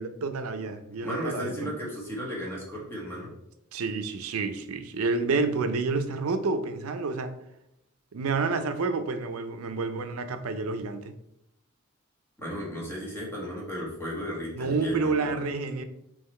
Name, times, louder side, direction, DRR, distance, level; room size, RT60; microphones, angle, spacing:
voice 1, 0.0-1.7 3.7-7.4 8.1-11.2 14.5-15.8, right 4 dB, 80° right, 0.5 m, -29 dB
voice 2, 1.0-3.3 12.4-15.3, equal, 10° left, 1.3 m, -35 dB
3.8 x 3.0 x 4.2 m
head